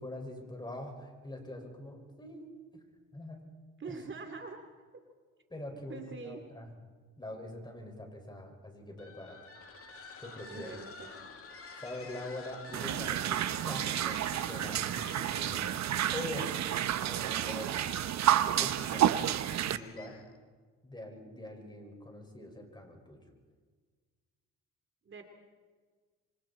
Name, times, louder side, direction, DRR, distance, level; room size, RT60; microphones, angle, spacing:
voice 1, 0.0-2.8 3.1-3.5 3.9-4.0 5.5-6.7 7.2-9.4 10.2-10.8 11.8-15.8 16.1-16.5 17.0-17.8 18.6-19.4 19.6-20.2 20.8-23.2, left 1 dB, 15° left, 2 dB, 5.6 m, -44 dB
voice 2, 3.8-4.6 5.9-6.4 10.5-11.1 25.0-25.2, right 4 dB, 40° right, 5 dB, 2.6 m, -43 dB
sound 1, 8.9-20.4, left 4 dB, 45° left, 2.5 m, -49 dB
Drips Underwater, 12.7-19.8, right 11 dB, 65° right, 0.9 m, -30 dB
27.0 x 24.5 x 4.3 m, 1.5 s
cardioid pair, 90°, 30 cm